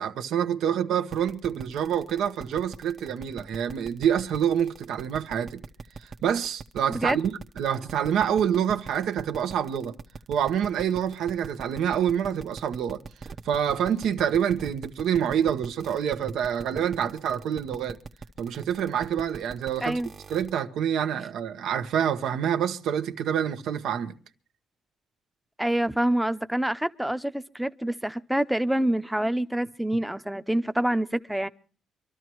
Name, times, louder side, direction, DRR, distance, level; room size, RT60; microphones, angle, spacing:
voice 1, 0.0-5.6 6.0-9.9 10.3-13.0 13.4-18.0 18.4-20.0 20.3-24.1, right 9 dB, 80° right, 1.0 m, -27 dB
sound 1, 1.1-20.6, right 5 dB, 45° right, 0.9 m, -42 dB
voice 2, 19.8-20.1 25.6-31.5, right 1 dB, 5° right, 0.7 m, -26 dB
25.0 x 13.0 x 3.1 m
cardioid pair, 90°, 0 cm